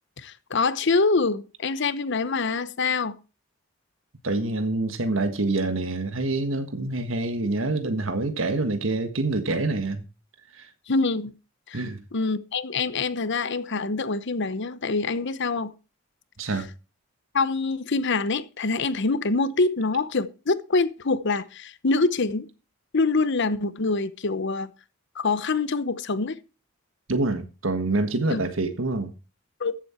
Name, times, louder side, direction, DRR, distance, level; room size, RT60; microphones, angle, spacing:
voice 1, 0.2-3.2 10.9-11.3 11.7-11.8 12.1-15.7 17.3-22.5 22.9-24.7 25.1-26.4 28.3-28.4 29.6-29.7, left 3 dB, 60° left, 0.9 m, -25 dB
voice 2, 4.2-10.0 10.5-10.7 11.7-12.0 16.4-16.7 27.1-29.1, right 2 dB, 75° right, 1.5 m, -26 dB
14.5 x 7.7 x 4.4 m
head